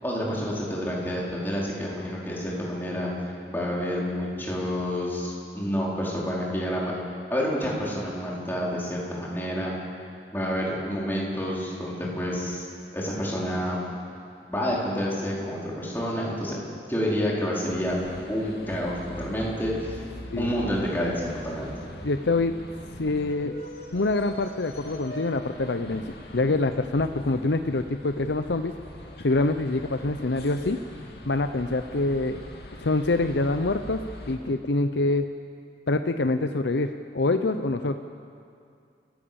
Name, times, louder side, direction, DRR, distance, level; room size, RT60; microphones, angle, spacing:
voice 1, 0.0-6.9 7.3-9.7 10.3-12.7 12.9-13.8 14.5-16.6 16.9-18.0 18.3-20.0 20.4-21.7, equal, 10° left, -5 dB, 4.6 m, -29 dB
sound 1, 17.7-34.4, equal, 65° left, 2.9 m, -42 dB
voice 2, 22.0-22.6 23.0-23.6 23.9-26.0 26.3-28.7 29.2-30.8 31.3-32.4 32.8-34.0 34.3-35.2 35.9-38.0, left 2 dB, 85° left, 8 dB, 0.7 m, -25 dB
29.0 x 15.5 x 7.1 m, 2.4 s
head